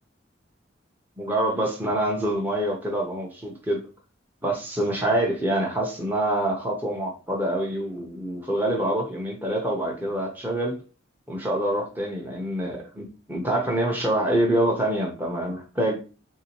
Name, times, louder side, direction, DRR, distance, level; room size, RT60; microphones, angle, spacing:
voice 1, 1.2-3.8 4.4-10.8 11.3-16.0, right 1 dB, 10° right, -1 dB, 0.6 m, -26 dB
3.7 x 2.7 x 2.8 m, 0.34 s
head